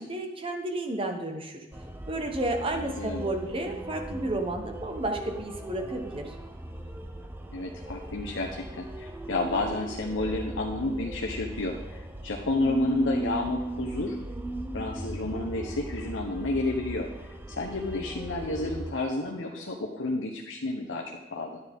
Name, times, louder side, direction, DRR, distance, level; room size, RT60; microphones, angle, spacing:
voice 1, 0.0-1.6 2.1-6.3, right 2 dB, 30° right, 3 dB, 1.1 m, -32 dB
sound 1, 1.7-18.9, right 1 dB, 10° right, 0.7 m, -38 dB
voice 2, 2.8-3.3 7.5-14.2 14.7-17.1 17.5-21.6, left 2 dB, 85° left, 0 dB, 1.0 m, -31 dB
10.5 x 9.6 x 3.6 m, 1.0 s
head